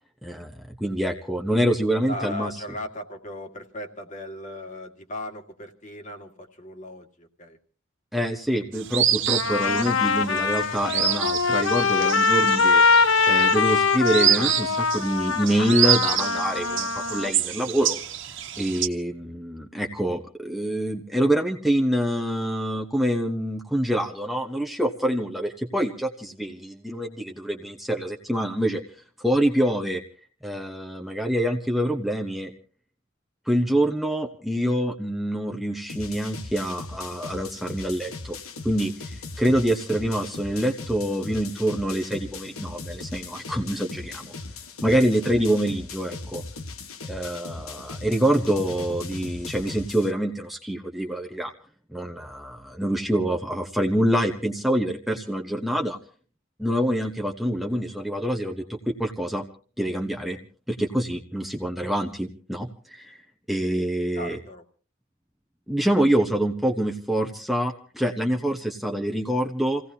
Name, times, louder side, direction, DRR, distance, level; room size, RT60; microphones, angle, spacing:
voice 1, 0.2-2.5 8.1-18.0 18.6-28.8 29.2-30.0 30.4-32.5 33.5-38.4 38.6-44.3 44.8-46.4 47.1-51.5 51.9-56.0 56.6-59.4 59.8-60.4 60.7-63.2 63.5-64.4 65.7-69.8, right 1 dB, ahead, 2 dB, 1.0 m, -26 dB
voice 2, 2.0-7.6 64.2-64.6, left 1 dB, 35° left, 3 dB, 2.0 m, -37 dB
sound 1, 8.7-18.9, right 10 dB, 60° right, 1.4 m, -27 dB
Trumpet, 9.3-17.3, left 5 dB, 70° left, 0.8 m, -22 dB
sound 2, 35.9-50.1, left 3 dB, 85° left, 1.4 m, -38 dB
29.0 x 17.0 x 2.8 m, 0.40 s
head